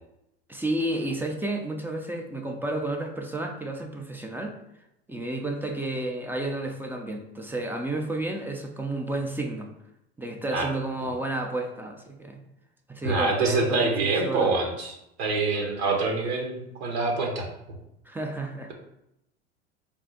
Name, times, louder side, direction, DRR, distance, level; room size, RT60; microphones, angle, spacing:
voice 1, 0.5-4.6 5.1-9.7 10.2-12.4 12.9-14.5 18.1-18.7, right 2 dB, 5° right, 2 dB, 0.4 m, -31 dB
voice 2, 13.0-17.5, right 3 dB, 80° right, 1 dB, 1.1 m, -26 dB
3.5 x 2.3 x 3.9 m, 0.84 s
hypercardioid pair, 95°, 32 cm